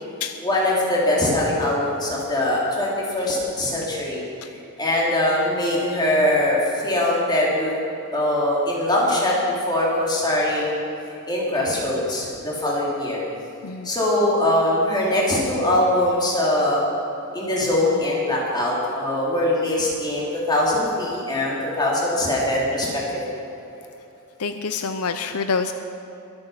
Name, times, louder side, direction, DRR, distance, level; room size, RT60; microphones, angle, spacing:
voice 1, 0.4-4.3 4.8-7.7 8.1-9.4 9.7-10.8 11.3-13.2 13.8-16.8 17.3-23.2, left 1 dB, 20° left, -5 dB, 3.7 m, -22 dB
voice 2, 13.6-13.9 24.4-25.7, left 5 dB, 75° left, 8 dB, 0.7 m, -27 dB
22.5 x 9.0 x 5.8 m, 2.9 s
head